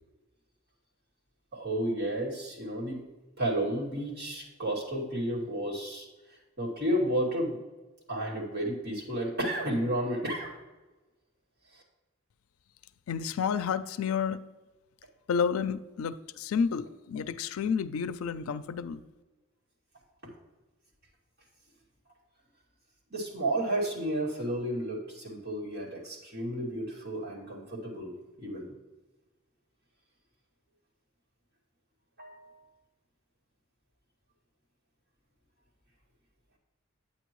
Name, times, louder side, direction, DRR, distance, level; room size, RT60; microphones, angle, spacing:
voice 1, 1.5-3.0 3.4-6.1 6.6-7.6 8.1-10.5 11.7-11.8 23.1-28.7 32.2-32.5, right 1 dB, 50° right, 2.5 m, -32 dB
voice 2, 13.1-14.4 15.3-19.0, left 6 dB, 75° left, 0.4 m, -30 dB
9.1 x 8.7 x 3.0 m
head